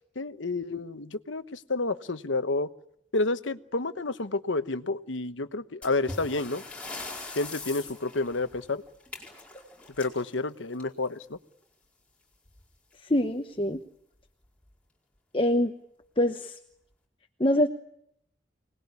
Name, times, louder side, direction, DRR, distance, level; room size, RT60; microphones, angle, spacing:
voice 1, 0.2-2.7 3.1-6.6 7.4-8.8 10.0-11.4, left 3 dB, 85° left, 11 dB, 1.1 m, -30 dB
sound 1, 5.8-11.2 12.4-12.6 12.9-13.0 13.7-13.8 14.4-14.7, left 2 dB, 5° left, 4.8 m, -42 dB
voice 2, 13.1-13.8 15.3-15.7 16.2-16.6 17.4-17.7, left 1 dB, 30° left, 5 dB, 1.1 m, -24 dB
25.0 x 20.0 x 9.7 m, 0.74 s
head